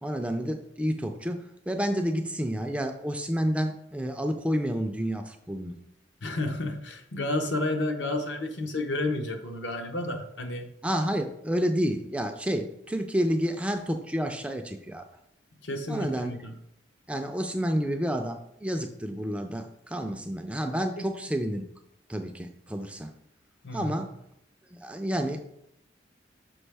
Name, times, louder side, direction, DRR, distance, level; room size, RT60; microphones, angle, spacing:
voice 1, 0.0-5.8 10.8-15.1 15.9-16.3 17.1-21.6 22.1-23.1 23.7-24.1 24.7-25.5, equal, 5° right, 5 dB, 0.3 m, -30 dB
voice 2, 6.2-10.7 15.6-16.5 21.0-21.1 23.6-24.0, left 2 dB, 70° left, 5 dB, 0.8 m, -31 dB
6.2 x 4.7 x 3.4 m, 0.77 s
head